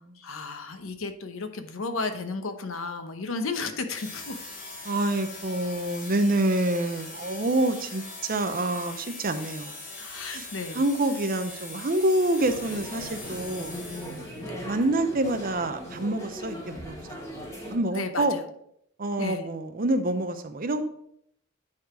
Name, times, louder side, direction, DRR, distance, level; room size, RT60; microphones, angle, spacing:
voice 1, 0.0-4.4 10.0-10.8 14.3-14.6 17.9-18.4 19.2-19.5, left 3 dB, 70° left, 8 dB, 0.9 m, -33 dB
sound 1, 3.9-14.5, left 3 dB, 45° left, 1.9 m, -41 dB
voice 2, 4.8-9.7 10.3-10.5 10.7-13.7 14.6-17.1 17.7-18.4 19.0-20.8, right 1 dB, 40° right, 8 dB, 0.6 m, -27 dB
sound 2, 12.4-17.8, equal, 15° left, 1.6 m, -39 dB
9.7 x 4.0 x 4.8 m, 0.72 s
head